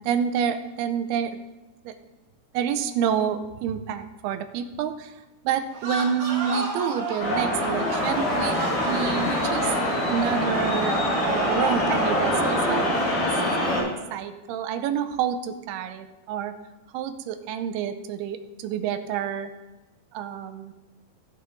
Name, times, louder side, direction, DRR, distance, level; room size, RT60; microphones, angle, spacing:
voice 1, 0.0-1.4 1.9-2.0 2.5-5.1 5.4-9.8 10.1-11.0 11.2-12.9 13.6-16.5 16.9-19.5 20.1-20.7, right 8 dB, 80° right, 8 dB, 2.4 m, -28 dB
sound 1, 5.7-11.2, right 2 dB, 65° right, 3.6 m, -33 dB
sound 2, 7.2-13.8, left 1 dB, 75° left, 5.7 m, -24 dB
16.5 x 6.5 x 3.8 m, 1.1 s
omnidirectional pair, 5.0 m